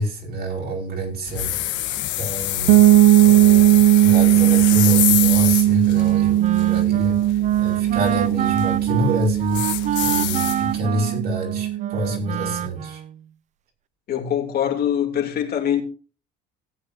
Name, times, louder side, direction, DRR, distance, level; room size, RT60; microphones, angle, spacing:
voice 1, 0.0-1.6 2.2-2.8 3.2-9.6 10.0-13.0, right 1 dB, 55° right, 5.2 m, -27 dB
sound 1, 1.3-10.8, left 14 dB, 75° left, 1.1 m, -27 dB
sound 2, 2.7-12.4, right 14 dB, 85° right, 0.7 m, -17 dB
Wind instrument woodwind instrument, 5.9-13.2, right 10 dB, 40° right, 0.4 m, -28 dB
voice 2, 14.1-15.8, left 9 dB, 55° left, 2.8 m, -23 dB
18.0 x 8.5 x 2.7 m
cardioid pair, 120°, 19 cm